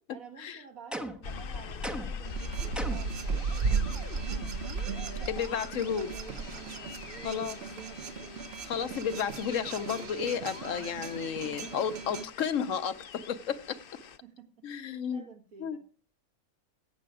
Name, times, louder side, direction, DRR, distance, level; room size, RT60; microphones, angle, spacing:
voice 1, 0.1-4.3 5.0-8.4 14.2-15.8, right 6 dB, 70° right, 2.0 m, -51 dB
sound 1, 0.9-1.3 1.8-2.3 2.7-3.2, right 1 dB, ahead, 0.5 m, -37 dB
sound 2, 1.2-14.2, left 6 dB, 50° left, 0.7 m, -43 dB
sound 3, 2.3-12.3, right 5 dB, 55° right, 0.9 m, -36 dB
voice 2, 5.3-6.1 7.2-7.6 8.7-13.8 14.6-15.2 15.6-15.8, left 7 dB, 65° left, 1.1 m, -32 dB
13.5 x 8.7 x 4.8 m
omnidirectional pair, 1.5 m